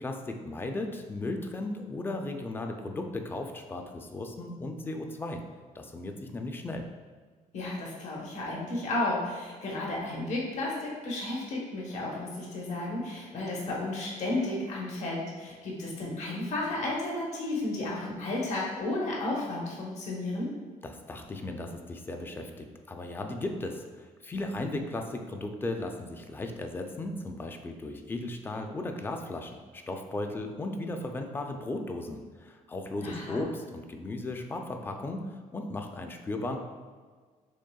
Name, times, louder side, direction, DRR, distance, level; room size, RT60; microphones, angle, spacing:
voice 1, 0.0-5.4 5.7-6.8 20.8-36.6, left 2 dB, 15° left, 4 dB, 0.4 m, -36 dB
voice 2, 7.5-20.5 33.0-33.4, left 2 dB, 60° left, -3 dB, 1.0 m, -33 dB
6.4 x 3.4 x 2.3 m, 1.5 s
cardioid pair, 155°, 13 cm